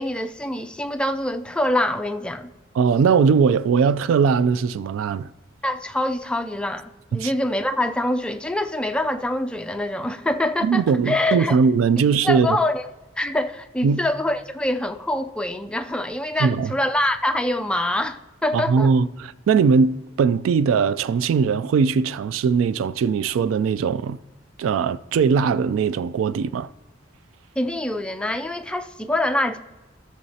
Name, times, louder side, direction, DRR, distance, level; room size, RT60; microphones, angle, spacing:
voice 1, 0.0-2.5 5.6-11.6 12.2-12.8 13.2-18.9 27.6-29.6, left 1 dB, 5° left, 0.4 m, -25 dB
voice 2, 2.8-5.3 7.1-7.3 10.6-12.6 13.8-14.0 16.4-16.7 18.5-24.2 24.6-26.7, right 5 dB, 80° right, 0.3 m, -20 dB
13.5 x 6.6 x 2.8 m
head